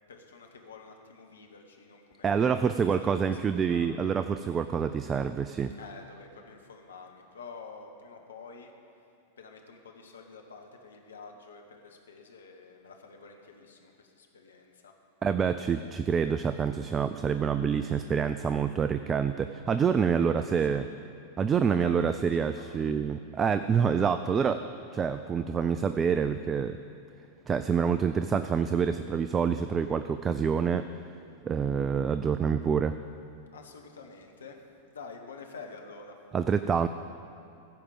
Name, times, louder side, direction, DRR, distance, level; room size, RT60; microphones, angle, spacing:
voice 1, 0.1-2.9 3.2-3.3 3.6-4.1 5.8-8.7 9.4-14.9 20.2-20.8 21.7-22.8 33.5-34.6 34.9-36.1, left 4 dB, 70° left, 2 dB, 1.1 m, -48 dB
voice 2, 2.2-5.7 15.2-20.9 21.4-24.7 24.9-26.8 27.5-30.9 31.4-33.0 36.3-36.9, right 6 dB, 20° right, 11 dB, 0.3 m, -27 dB
15.0 x 5.0 x 7.4 m, 2.7 s
figure-of-eight pair, 90°, 0 cm